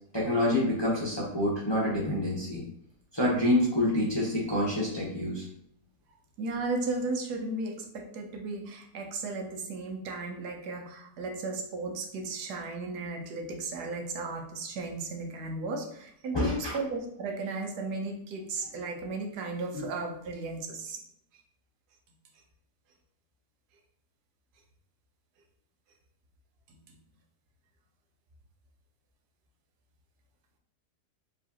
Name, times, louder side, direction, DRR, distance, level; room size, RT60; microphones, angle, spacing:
voice 1, 0.1-2.6 3.1-5.4 16.3-16.8 19.7-19.9, left 1 dB, 20° left, -6 dB, 0.8 m, -27 dB
voice 2, 6.4-21.0, right 3 dB, 80° right, 3 dB, 1.3 m, -35 dB
4.8 x 3.2 x 2.8 m, 0.72 s
omnidirectional pair, 1.7 m